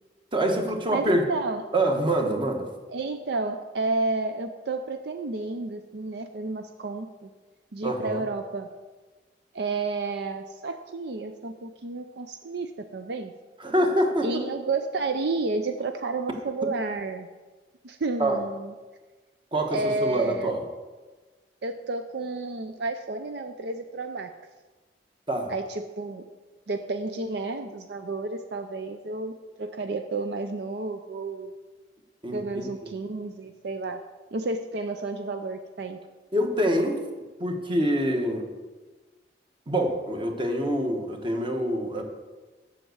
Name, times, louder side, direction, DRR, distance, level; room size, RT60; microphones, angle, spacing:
voice 1, 0.3-1.2 1.7-2.7 7.8-8.2 13.6-14.4 16.6-16.7 18.2-18.4 19.5-20.6 25.3-25.5 32.2-32.9 36.3-37.0 37.4-38.4 39.7-42.0, right 1 dB, 30° right, 3 dB, 1.3 m, -25 dB
voice 2, 0.9-1.6 2.9-7.3 7.7-8.7 9.5-13.3 14.2-17.3 17.8-18.7 19.7-20.5 21.6-24.3 25.5-26.2 26.7-31.5 32.3-34.0 34.3-36.0, right 3 dB, 65° right, 7 dB, 0.6 m, -31 dB
7.7 x 6.5 x 8.0 m, 1.3 s
head